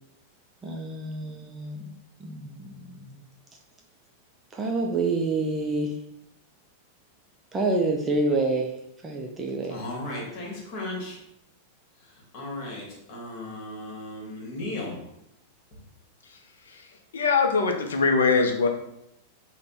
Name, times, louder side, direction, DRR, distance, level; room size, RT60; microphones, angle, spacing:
voice 1, 0.6-1.9 2.2-3.2 4.5-6.0 7.5-8.7 9.0-9.8, right 3 dB, 20° right, 1 dB, 0.4 m, -28 dB
voice 2, 9.7-11.2 12.3-14.9, left 1 dB, 45° left, -3 dB, 1.2 m, -35 dB
voice 3, 17.1-18.7, left 4 dB, 65° left, 4 dB, 0.5 m, -22 dB
3.2 x 2.1 x 3.9 m, 0.82 s
figure-of-eight pair, 90°, 0 cm